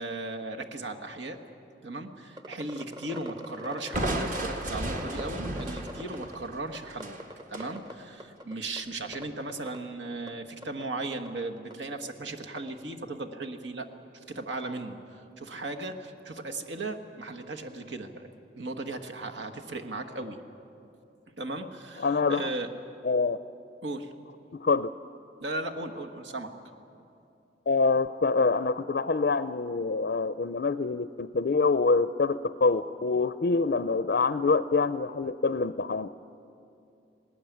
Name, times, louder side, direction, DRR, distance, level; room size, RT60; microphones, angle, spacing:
voice 1, 0.0-1.4 1.8-7.2 7.5-13.9 14.1-18.3 18.6-20.4 21.4-22.7 23.2-23.3 23.8-24.1 25.4-26.5, right 2 dB, 85° right, 4 dB, 1.5 m, -37 dB
sound 1, 2.4-6.5 6.7-7.9 8.2-8.8 9.0-9.8 10.3-10.4 10.6-10.8 11.2-11.3 11.7-11.8 12.6-12.7, equal, 25° right, 0.9 m, -42 dB
Crushing, 3.9-7.7, right 1 dB, 45° right, 1.7 m, -34 dB
voice 2, 22.0-22.5 23.0-23.4 24.5-24.9 27.7-36.1, left 4 dB, 55° left, 13 dB, 0.4 m, -25 dB
19.5 x 19.0 x 9.3 m, 2.7 s
head